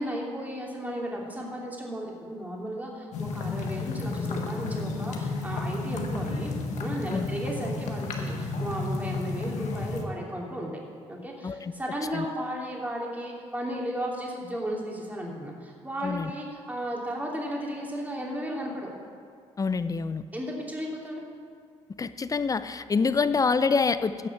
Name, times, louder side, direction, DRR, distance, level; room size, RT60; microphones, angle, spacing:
voice 1, 0.0-6.5 6.8-10.7 11.1-18.9 20.3-21.2, equal, 15° right, -2 dB, 2.8 m, -34 dB
sound 1, 3.1-10.0, left 3 dB, 75° left, 1.4 m, -32 dB
voice 2, 19.6-20.3 22.0-24.3, left 4 dB, 30° left, 13 dB, 0.5 m, -26 dB
16.0 x 6.1 x 6.0 m, 2.3 s
cardioid pair, 80°, 12 cm